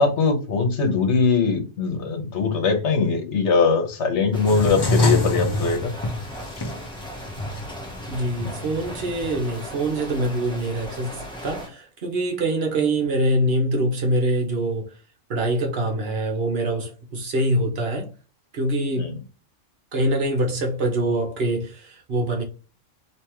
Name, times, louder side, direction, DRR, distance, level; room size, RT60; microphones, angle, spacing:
voice 1, 0.0-5.9 19.0-19.2, left 4 dB, 65° left, 1.3 m, -21 dB
sound 1, 4.3-11.7, equal, 5° left, 1.0 m, -38 dB
sound 2, 4.5-9.4, left 1 dB, 35° left, 0.4 m, -26 dB
voice 2, 8.1-14.9 15.3-18.1 18.5-19.2 19.9-22.4, right 1 dB, 55° right, 1.1 m, -24 dB
3.5 x 3.0 x 3.0 m
omnidirectional pair, 1.3 m